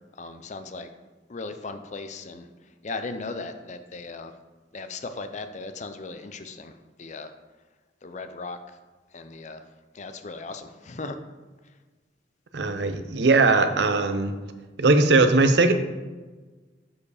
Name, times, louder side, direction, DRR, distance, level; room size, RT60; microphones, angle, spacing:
voice 1, 0.2-0.9 1.3-2.5 2.8-4.3 4.7-7.3 8.0-8.6 9.1-9.6 9.9-11.2, left 3 dB, 40° left, 8 dB, 0.5 m, -37 dB
voice 2, 12.5-14.3 14.8-15.7, right 3 dB, 60° right, 9 dB, 0.6 m, -19 dB
7.1 x 4.9 x 4.9 m, 1.3 s
head